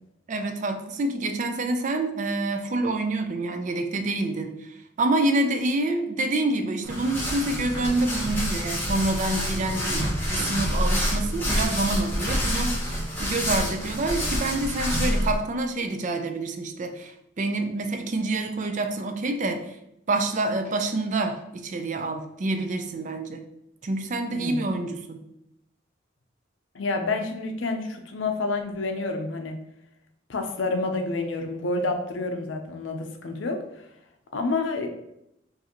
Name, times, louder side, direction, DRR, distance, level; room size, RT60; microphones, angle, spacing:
voice 1, 0.3-12.9 13.2-19.7 20.1-23.4 23.8-25.2, right 2 dB, 40° right, 6 dB, 0.4 m, -27 dB
sound 1, 6.8-15.4, equal, 10° left, 1.2 m, -27 dB
voice 2, 24.3-24.7 26.7-29.6 30.3-33.6 34.3-34.9, left 3 dB, 75° left, 5 dB, 0.6 m, -28 dB
4.9 x 2.6 x 2.9 m, 0.80 s
head